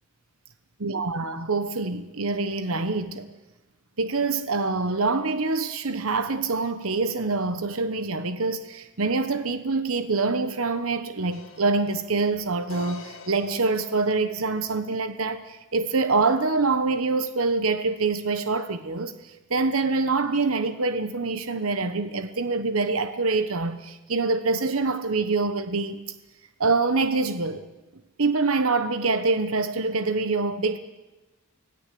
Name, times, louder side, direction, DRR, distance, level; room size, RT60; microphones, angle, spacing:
voice 1, 0.8-3.3 4.0-26.0 26.6-27.6 28.2-30.8, right 3 dB, 75° right, 1.1 m, -25 dB
sound 1, 11.3-14.7, left 4 dB, 65° left, 2.0 m, -46 dB
24.5 x 17.5 x 8.5 m
head